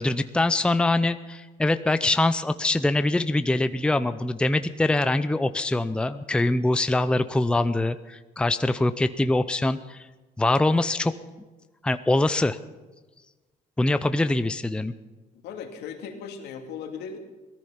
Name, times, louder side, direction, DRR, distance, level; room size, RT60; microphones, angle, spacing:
voice 1, 0.0-10.1 10.4-11.1 11.8-12.6 13.8-14.9, left 2 dB, 5° left, 11 dB, 0.6 m, -23 dB
voice 2, 15.4-17.2, left 6 dB, 85° left, 3 dB, 2.5 m, -37 dB
18.0 x 13.5 x 5.8 m, 1.2 s
cardioid pair, 110°, 17 cm